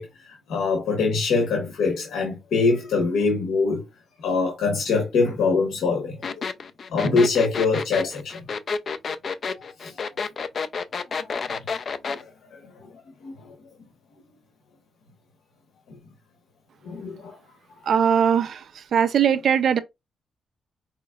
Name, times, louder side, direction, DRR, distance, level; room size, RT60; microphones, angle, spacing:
voice 1, 0.0-3.8 4.2-6.5 6.9-8.4 9.6-10.0 11.2-11.3 12.1-13.3 15.9-16.0 16.8-17.4, left 4 dB, 90° left, 1.0 m, -24 dB
sound 1, 6.2-12.2, left 5 dB, 50° left, 0.4 m, -29 dB
voice 2, 17.9-18.6 18.9-19.8, right 8 dB, 65° right, 0.4 m, -20 dB
4.8 x 2.9 x 2.3 m
cardioid pair, 100°, 0 cm